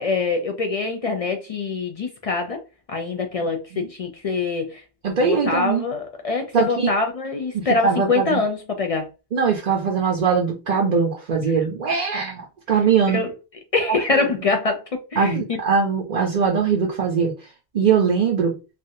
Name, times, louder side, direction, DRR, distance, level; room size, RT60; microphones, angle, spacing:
voice 1, 0.0-2.6 2.9-4.8 5.2-9.1 13.0-13.3 13.7-15.6, left 3 dB, 55° left, 0.4 m, -24 dB
voice 2, 5.0-5.8 6.5-6.9 7.5-8.4 9.3-13.2 13.9-14.0 15.2-17.3 17.7-18.5, right 6 dB, 50° right, 0.6 m, -21 dB
3.2 x 2.4 x 2.7 m
omnidirectional pair, 1.1 m